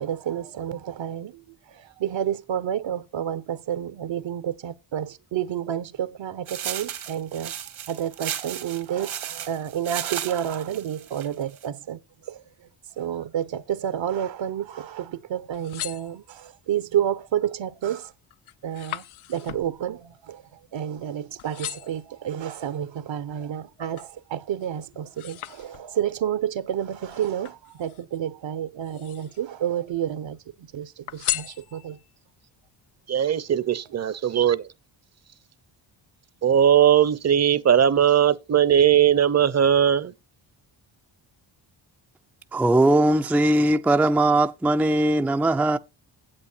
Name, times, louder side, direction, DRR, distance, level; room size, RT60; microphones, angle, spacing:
voice 1, 0.0-1.4 1.8-7.5 7.9-12.0 12.3-12.4 13.0-18.1 18.6-19.0 19.3-20.4 20.7-32.0, right 10 dB, 65° right, 1.0 m, -30 dB
sound 1, 6.5-11.7, right 10 dB, 85° right, 2.1 m, -35 dB
sound 2, 15.4-16.7 17.2-17.6 18.0-21.1 21.4-22.1 22.7-24.2 24.6-26.2 27.1-28.2 28.7-29.5 29.9-30.6 31.1-32.1 32.6-32.7, left 13 dB, 80° left, 0.6 m, -37 dB
voice 2, 33.1-34.7 36.4-40.1, right 9 dB, 35° right, 0.8 m, -19 dB
voice 3, 42.5-45.8, right 1 dB, 5° right, 0.5 m, -20 dB
10.0 x 7.9 x 4.5 m
cardioid pair, 80°, 48 cm